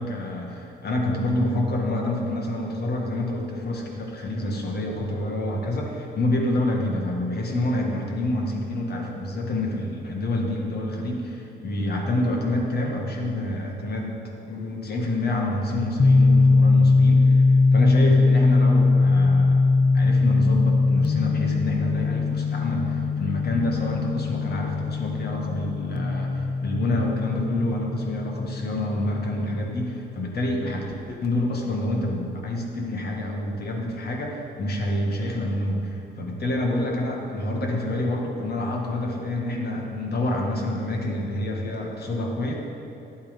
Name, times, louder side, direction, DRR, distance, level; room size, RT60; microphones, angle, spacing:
voice 1, 0.0-14.2 14.5-17.4 17.7-19.6 19.9-42.5, left 1 dB, 60° left, 0 dB, 1.9 m, -27 dB
sound 1, 16.0-29.6, left 3 dB, 25° left, 0.4 m, -21 dB
11.5 x 7.6 x 5.3 m, 2.8 s
cardioid pair, 70°, 18 cm